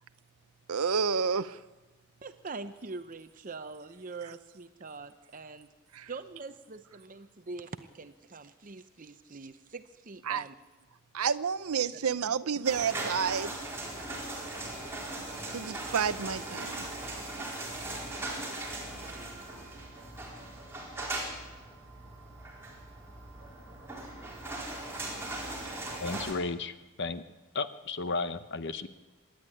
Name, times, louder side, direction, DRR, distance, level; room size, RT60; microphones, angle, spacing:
voice 1, 0.7-1.6 5.9-6.1 10.3-10.4 11.1-13.6 15.5-16.9, right 6 dB, 75° right, 0.7 m, -30 dB
voice 2, 2.2-5.7 6.1-10.5, right 3 dB, 35° right, 0.7 m, -43 dB
sound 1, 12.6-26.3, right 2 dB, 10° right, 4.1 m, -39 dB
voice 3, 26.0-27.2 27.5-28.9, left 3 dB, 50° left, 0.9 m, -34 dB
25.0 x 11.0 x 9.9 m
head